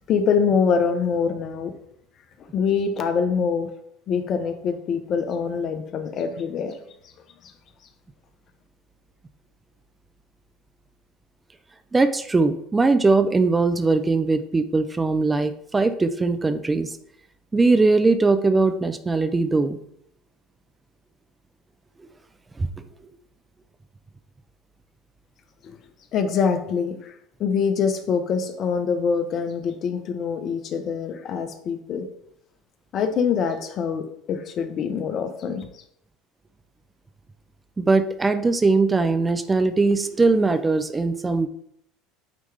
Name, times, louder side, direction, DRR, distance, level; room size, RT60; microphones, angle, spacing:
voice 1, 0.1-1.7 2.5-3.7 4.1-6.8 26.1-27.1 27.4-32.1 32.9-35.7, left 6 dB, 50° left, 8 dB, 0.9 m, -24 dB
voice 2, 11.9-16.9 17.5-19.8 22.6-22.7 37.8-41.5, right 3 dB, 20° right, 10 dB, 0.5 m, -20 dB
9.0 x 3.2 x 3.5 m, 0.74 s
hypercardioid pair, 80°, 0 cm